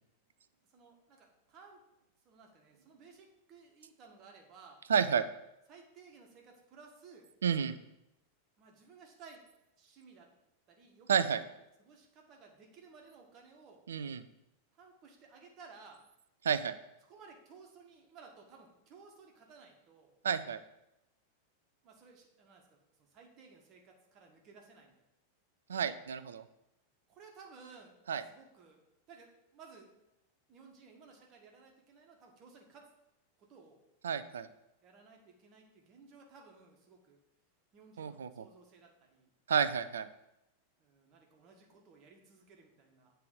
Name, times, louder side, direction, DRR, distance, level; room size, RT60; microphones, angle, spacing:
voice 1, 0.7-1.8 2.2-4.8 5.7-7.3 8.6-9.4 9.8-10.3 10.7-11.5 11.8-13.8 14.7-16.0 17.1-20.1 21.8-22.8 23.1-24.9 27.1-27.9 28.3-28.8 29.1-29.9 30.5-32.9 33.4-33.8 34.8-37.2 37.7-39.3 40.8-43.1, right 5 dB, 35° right, 2 dB, 1.4 m, -57 dB
voice 2, 4.9-5.2 7.4-7.8 11.1-11.4 13.9-14.2 16.4-16.7 20.2-20.6 25.7-26.4 28.1-28.2 34.0-34.5 38.0-38.5 39.5-40.1, right 7 dB, 65° right, 12 dB, 0.4 m, -30 dB
8.4 x 3.4 x 5.1 m, 0.87 s
figure-of-eight pair, 90°, 0 cm